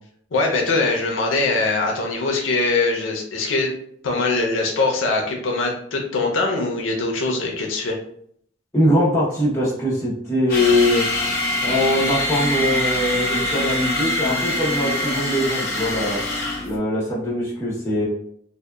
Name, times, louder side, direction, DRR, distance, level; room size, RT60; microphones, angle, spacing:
voice 1, 0.3-3.7 4.0-8.0, left 3 dB, 85° left, 0 dB, 0.5 m, -22 dB
voice 2, 8.7-11.1 11.6-16.2 16.7-18.1, left 1 dB, 15° left, -7 dB, 0.8 m, -21 dB
sound 1, 10.5-16.8, left 1 dB, 50° left, 0.8 m, -24 dB
2.7 x 2.1 x 2.2 m, 0.67 s
head